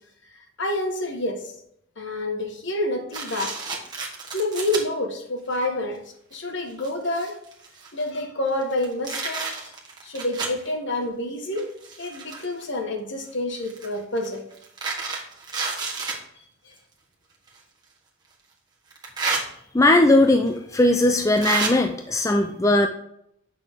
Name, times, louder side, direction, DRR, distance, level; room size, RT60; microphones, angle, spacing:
voice 1, 0.6-1.4 2.0-3.6 4.3-6.0 6.3-7.4 7.9-9.8 10.0-11.7 12.0-14.4, left 1 dB, 60° left, 3 dB, 1.4 m, -28 dB
sound 1, 3.1-4.8 5.5-5.6 6.3-6.4 6.7-8.1 8.6-10.6 11.5-12.6 13.6-16.2 17.5-17.6 18.9-19.4 20.5-20.6 21.4-21.7, right 4 dB, 20° right, 1.4 m, -30 dB
voice 2, 19.7-22.9, left 2 dB, 15° left, 5 dB, 0.4 m, -18 dB
8.6 x 6.1 x 3.7 m, 0.73 s
head